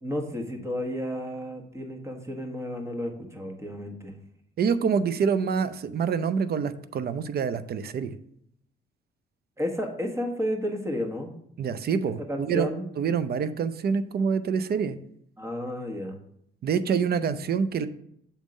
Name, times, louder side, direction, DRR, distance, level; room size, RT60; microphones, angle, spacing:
voice 1, 0.0-4.2 9.6-11.3 12.2-12.9 15.4-16.2, equal, 15° right, 4 dB, 1.3 m, -32 dB
voice 2, 4.6-8.2 11.6-12.7 13.0-15.0 16.6-17.9, right 6 dB, 50° right, 13 dB, 0.6 m, -26 dB
7.2 x 3.6 x 5.2 m, 0.73 s
cardioid pair, 90°, 20 cm